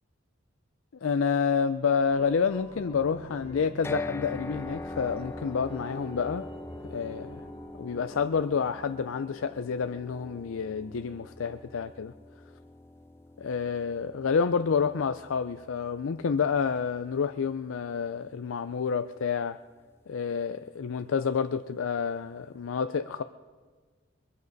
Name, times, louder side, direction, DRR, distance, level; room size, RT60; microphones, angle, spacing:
voice 1, 1.0-6.5 6.9-7.4 7.8-12.1 13.4-19.6 20.1-23.2, left 6 dB, 85° left, 10 dB, 0.4 m, -29 dB
sound 1, 2.1-11.4 11.8-11.9, equal, 30° left, 1.5 m, -49 dB
sound 2, 3.8-18.0, left 2 dB, 10° left, 0.4 m, -43 dB
22.5 x 14.0 x 4.0 m, 1.5 s
head